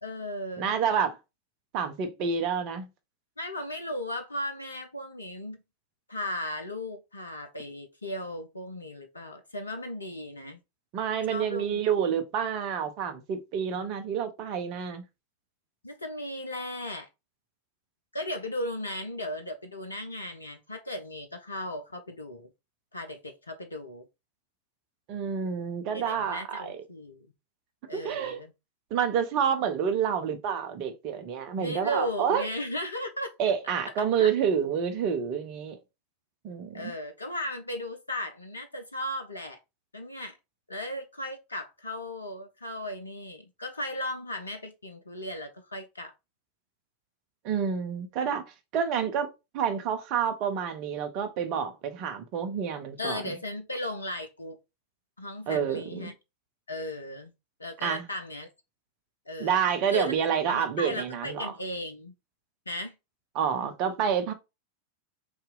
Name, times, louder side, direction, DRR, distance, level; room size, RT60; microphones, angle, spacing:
voice 1, 0.0-0.7 3.4-5.6 6.1-10.6 11.3-11.8 15.8-17.1 18.1-22.5 22.9-24.1 25.9-27.3 27.9-28.5 31.6-33.3 33.6-33.7 34.2-34.3 36.7-39.6 39.9-40.4 40.7-46.1 53.0-54.6 55.2-56.1 56.7-57.3 57.6-58.5 59.3-59.6 59.9-62.1 62.7-62.9, left 1 dB, 80° left, 0.5 m, -36 dB
voice 2, 0.6-1.2 1.7-2.9 10.9-15.0 25.1-26.8 27.9-28.4 28.9-32.5 33.4-35.8 36.4-36.9 47.4-53.3 55.5-56.1 57.8-58.0 59.4-61.5 63.3-64.3, right 7 dB, 40° right, 0.7 m, -28 dB
2.7 x 2.4 x 3.8 m
figure-of-eight pair, 90°, 0 cm